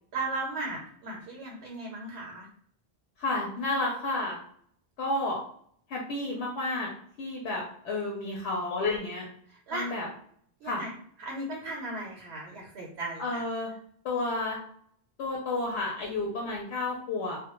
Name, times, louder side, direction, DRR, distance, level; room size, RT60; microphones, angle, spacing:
voice 1, 0.1-2.5 9.5-9.9 10.6-10.9 11.2-13.4, right 2 dB, 80° right, -1 dB, 0.8 m, -36 dB
voice 2, 3.2-4.4 5.0-5.4 5.9-6.9 7.2-9.3 9.7-10.1 10.6-10.8 13.2-13.7 14.0-14.6 15.2-17.4, left 2 dB, 85° left, -2 dB, 0.9 m, -31 dB
2.1 x 2.0 x 2.9 m, 0.62 s
omnidirectional pair, 1.1 m